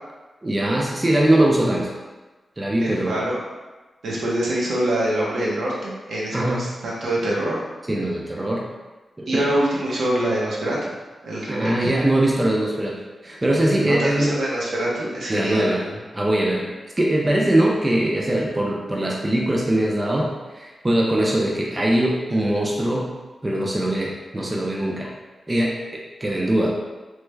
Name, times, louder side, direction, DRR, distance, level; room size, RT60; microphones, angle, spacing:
voice 1, 0.4-1.9 2.6-3.2 6.3-6.7 7.9-8.6 9.2-9.5 11.5-14.4 15.3-23.1 23.4-25.1 25.5-26.7, right 1 dB, 20° right, -2 dB, 0.4 m, -22 dB
voice 2, 2.8-3.4 4.0-7.6 9.3-10.9 11.2-11.7 13.8-15.6, right 1 dB, 85° right, -5 dB, 0.8 m, -24 dB
3.2 x 2.1 x 3.2 m, 1.2 s
wide cardioid pair, 125°, 0 cm